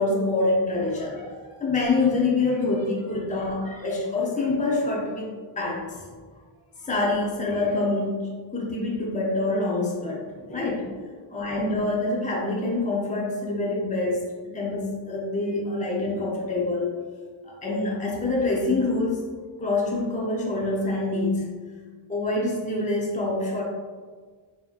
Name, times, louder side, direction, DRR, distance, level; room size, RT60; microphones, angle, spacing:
voice 1, 0.0-6.0 6.8-10.9 11.3-16.9 17.4-19.2 19.6-21.5 22.1-23.6, left 2 dB, 15° left, -3 dB, 0.7 m, -26 dB
4.0 x 2.8 x 2.4 m, 1.5 s
wide cardioid pair, 65°, 50 cm